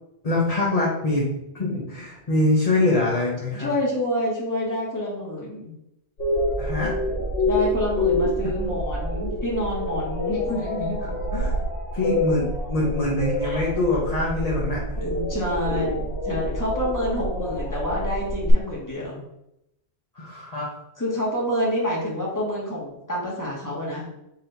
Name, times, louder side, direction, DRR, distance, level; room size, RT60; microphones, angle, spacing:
voice 1, 0.2-1.3 1.5-3.7 6.6-7.0 11.0-11.6 11.9-15.1 20.2-20.7, left 2 dB, 40° left, -5 dB, 0.9 m, -24 dB
voice 2, 3.5-5.7 7.4-11.1 13.4-13.6 15.0-19.2 21.0-24.0, equal, 15° left, -5 dB, 1.4 m, -28 dB
sound 1, 6.2-18.5, left 1 dB, 80° left, 1.3 m, -27 dB
4.3 x 2.8 x 4.0 m, 0.83 s
omnidirectional pair, 1.1 m